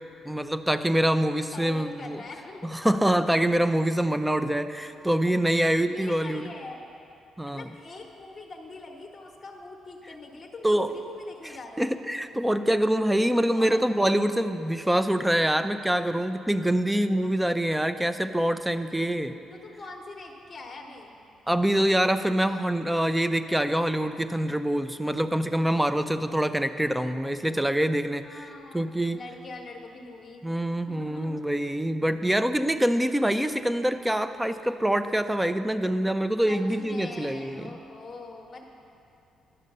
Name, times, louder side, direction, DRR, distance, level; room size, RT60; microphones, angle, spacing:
voice 1, 0.2-2.2 2.7-6.5 7.4-7.7 10.6-10.9 11.4-19.4 21.5-28.4 28.7-29.2 30.4-37.7, right 1 dB, 5° right, 10 dB, 0.4 m, -25 dB
voice 2, 1.5-2.8 5.2-5.5 5.8-6.8 7.5-11.9 13.2-14.0 19.5-21.2 28.2-30.5 30.9-31.4 36.4-38.6, left 3 dB, 30° left, 0 dB, 0.9 m, -43 dB
11.0 x 6.3 x 5.4 m, 2.7 s
cardioid pair, 90°, 0 cm